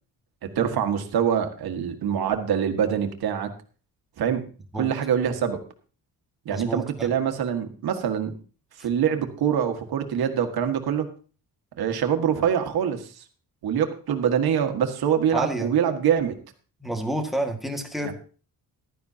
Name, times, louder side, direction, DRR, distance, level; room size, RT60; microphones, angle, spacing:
voice 1, 0.4-3.5 4.2-4.4 4.7-5.6 6.4-8.3 8.8-11.1 11.8-13.2 13.6-16.4 18.0-18.1, right 8 dB, 80° right, 6 dB, 1.7 m, -24 dB
voice 2, 6.5-7.2 8.8-8.9 15.3-15.7 16.8-18.1, right 1 dB, ahead, 5 dB, 1.8 m, -29 dB
15.0 x 12.0 x 2.8 m, 0.38 s
cardioid pair, 135°, 37 cm